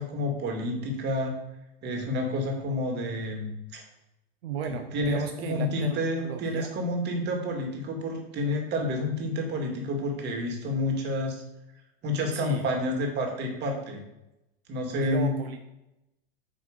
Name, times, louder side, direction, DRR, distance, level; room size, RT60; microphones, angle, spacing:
voice 1, 0.0-1.3 1.8-3.8 4.9-11.4 12.0-14.0 14.7-15.3, left 1 dB, 35° right, 2 dB, 2.3 m, -29 dB
voice 2, 4.4-6.7 12.3-12.7 15.0-15.6, right 8 dB, 80° right, 6 dB, 0.9 m, -35 dB
9.0 x 3.5 x 6.6 m, 0.91 s
supercardioid pair, 125°, 30 cm